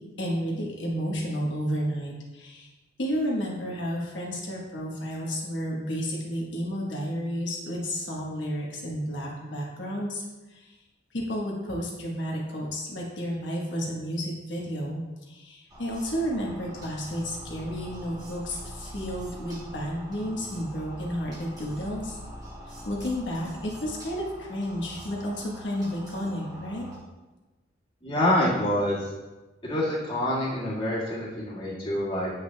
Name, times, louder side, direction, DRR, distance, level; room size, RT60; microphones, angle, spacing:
voice 1, 0.2-2.7 3.0-10.2 10.5-10.7 11.1-22.2 22.9-26.9, equal, 80° left, -3 dB, 1.1 m, -31 dB
sound 1, 15.7-27.0, equal, 20° right, 1.2 m, -43 dB
voice 2, 28.0-29.1 29.6-32.3, left 1 dB, 25° left, -8 dB, 1.7 m, -26 dB
8.4 x 5.8 x 2.2 m, 1.1 s
head